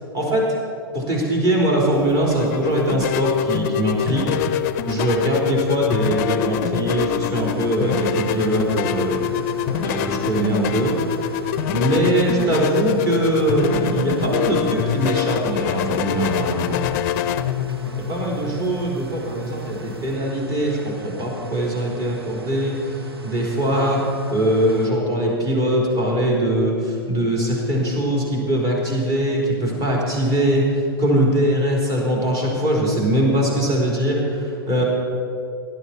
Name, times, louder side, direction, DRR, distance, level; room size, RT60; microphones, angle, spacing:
voice 1, 0.9-9.2 9.7-11.0 11.6-16.8 18.1-22.8 23.2-34.8, right 1 dB, 30° right, -2 dB, 3.9 m, -21 dB
sound 1, 1.9-20.2, left 10 dB, 40° left, 0.6 m, -25 dB
sound 2, 7.4-24.9, right 6 dB, 80° right, 1.2 m, -36 dB
18.5 x 11.0 x 4.4 m, 2.6 s
figure-of-eight pair, 100°, 13 cm